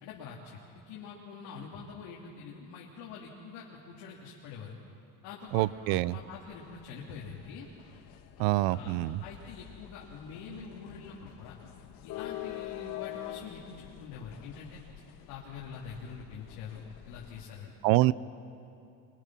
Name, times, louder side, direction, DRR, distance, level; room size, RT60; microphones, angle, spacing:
voice 1, 0.0-4.8 5.2-7.7 8.7-8.9 9.2-11.6 12.0-14.8 15.3-17.7, left 5 dB, 85° left, -4 dB, 3.0 m, -45 dB
sound 1, 5.5-17.5, left 13 dB, 65° left, 1.3 m, -46 dB
voice 2, 5.5-6.2 8.4-9.2 17.8-18.1, right 17 dB, 85° right, 19 dB, 0.7 m, -25 dB
26.0 x 23.0 x 6.1 m, 2.6 s
cardioid pair, 145°, 36 cm